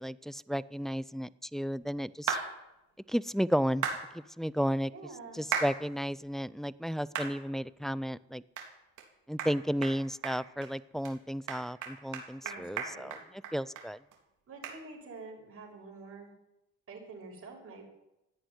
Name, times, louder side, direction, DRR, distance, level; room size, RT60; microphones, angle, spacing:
voice 1, 0.0-2.4 3.1-3.9 4.1-4.9 5.3-8.4 9.3-13.2 13.5-14.0, equal, ahead, 18 dB, 0.5 m, -33 dB
sound 1, 2.3-2.5 3.8-4.0 5.5-5.7 6.2-6.3 7.1-7.3 7.8-7.9 8.6-8.7 9.0-9.1 9.4-9.5 9.8-10.0 10.2-10.7 11.0-11.1 11.5-13.9 14.1-14.2 14.6-14.8, right 7 dB, 75° right, 3.3 m, -34 dB
voice 2, 4.9-5.4 12.4-13.2 14.5-16.3 16.9-17.8, right 3 dB, 50° right, -1 dB, 6.6 m, -47 dB
14.0 x 10.0 x 9.8 m, 0.91 s
cardioid pair, 90°, 30 cm